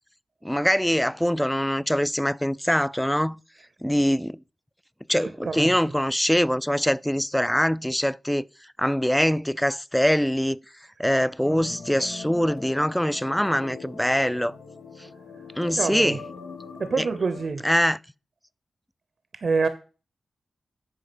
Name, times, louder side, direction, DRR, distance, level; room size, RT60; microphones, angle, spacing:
voice 1, 0.4-3.4 3.8-4.4 5.1-8.5 8.8-10.6 11.0-14.5 15.6-16.3 17.0-17.1 17.6-18.0, equal, 5° left, 0.3 m, -23 dB
voice 2, 5.4-5.8 15.8-16.2 16.8-17.6 19.4-19.7, right 4 dB, 65° right, 0.8 m, -26 dB
sound 1, 11.4-17.5, left 4 dB, 90° left, 1.1 m, -42 dB
8.5 x 5.1 x 5.1 m
cardioid pair, 45°, 0 cm